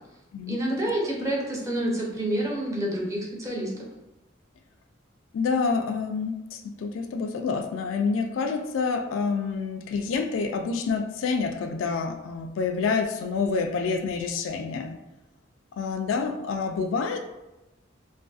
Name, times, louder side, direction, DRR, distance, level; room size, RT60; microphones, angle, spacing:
voice 1, 0.5-3.7, right 1 dB, 15° right, -3 dB, 0.5 m, -28 dB
voice 2, 5.3-15.0 15.8-17.2, left 4 dB, 90° left, 6 dB, 0.3 m, -28 dB
2.6 x 2.5 x 2.3 m, 0.99 s
head